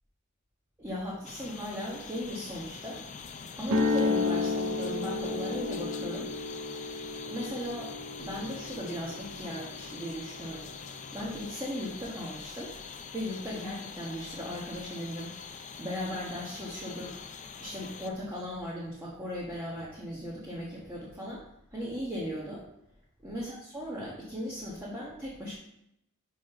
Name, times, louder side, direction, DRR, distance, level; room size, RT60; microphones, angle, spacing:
voice 1, 0.8-3.0 3.6-6.3 7.3-7.9 8.2-10.7 11.1-12.7 13.1-21.4 21.7-22.7 23.2-25.5, equal, 10° right, -6 dB, 1.4 m, -37 dB
sound 1, 1.2-18.1, left 6 dB, 35° left, 0.5 m, -44 dB
sound 2, 3.6-11.7, left 3 dB, 65° right, 0.8 m, -33 dB
5.4 x 5.0 x 5.8 m, 0.79 s
head